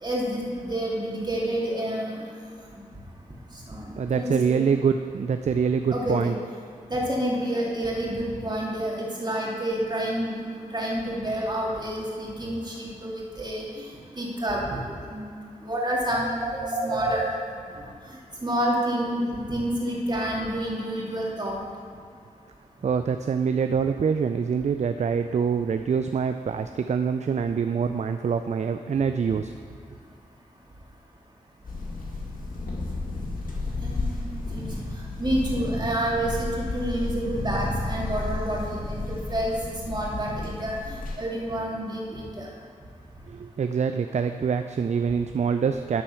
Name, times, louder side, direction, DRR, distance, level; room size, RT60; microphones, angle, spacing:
voice 1, 0.0-2.2 2.7-2.8 3.7-4.7 5.9-6.3 6.9-10.3 10.7-13.9 14.2-15.4 15.6-17.3 18.4-21.6 33.8-34.7 35.2-39.5 39.9-42.5, right 1 dB, 30° right, -4 dB, 2.4 m, -29 dB
voice 2, 4.0-6.3 22.8-29.5 43.3-46.0, right 6 dB, 50° right, 8 dB, 0.4 m, -25 dB
sound 1, 31.6-41.1, left 2 dB, 70° left, 1.8 m, -32 dB
12.5 x 4.3 x 5.6 m, 2.4 s
cardioid pair, 55°, 15 cm